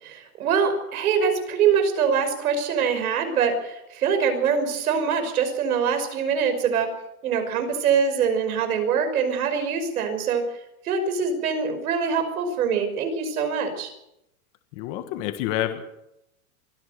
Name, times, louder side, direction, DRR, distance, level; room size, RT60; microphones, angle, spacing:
voice 1, 0.0-6.9 7.2-10.4 10.8-13.9, right 6 dB, 80° right, 7 dB, 5.7 m, -24 dB
voice 2, 14.7-15.9, left 12 dB, 30° left, 8 dB, 1.6 m, -28 dB
24.5 x 16.0 x 6.8 m, 0.85 s
supercardioid pair, 175°, 43 cm